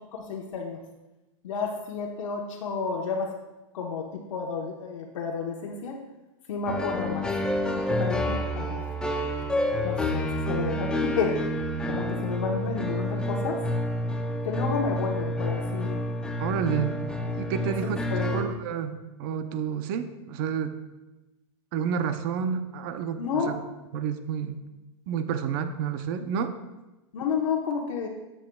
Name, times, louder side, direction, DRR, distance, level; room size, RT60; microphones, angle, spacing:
voice 1, 0.1-0.8 1.4-3.4 3.7-6.0 6.5-7.3 7.7-8.8 9.8-11.4 11.9-13.6 14.4-16.0 18.1-18.4 23.2-23.6 27.1-28.1, left 5 dB, 80° left, 1 dB, 1.1 m, -31 dB
sound 1, 6.6-18.4, left 1 dB, 5° left, 0.5 m, -29 dB
voice 2, 16.4-17.0 17.4-18.0 18.3-20.8 21.7-23.6 23.9-24.6 25.1-26.5, right 7 dB, 45° right, 9 dB, 0.7 m, -30 dB
12.5 x 7.6 x 2.3 m, 1.0 s
supercardioid pair, 155°, 16 cm